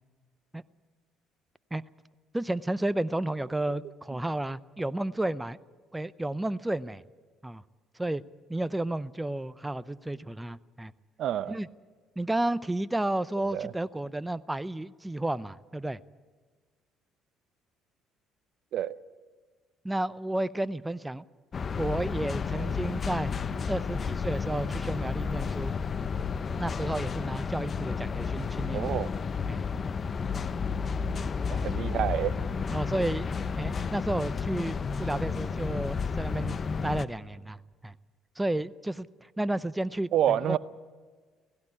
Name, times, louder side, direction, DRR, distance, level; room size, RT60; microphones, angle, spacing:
voice 1, 2.3-5.6 5.9-7.0 7.4-7.6 7.9-8.2 8.5-10.9 11.5-11.7 12.2-16.0 19.8-21.2 21.8-23.3 23.7-25.7 26.6-28.9 29.5-29.6 32.7-33.3 33.6-37.9 38.4-40.6, right 1 dB, 10° right, 17 dB, 0.6 m, -32 dB
voice 2, 11.2-11.6 13.5-13.7 18.7-18.9 22.6-22.7 28.7-29.1 31.5-32.3 40.1-40.6, right 11 dB, 65° right, 17 dB, 0.6 m, -28 dB
sound 1, 21.5-37.1, left 5 dB, 40° left, 0.8 m, -32 dB
16.5 x 16.5 x 9.8 m, 1.5 s
supercardioid pair, 65°, 0 cm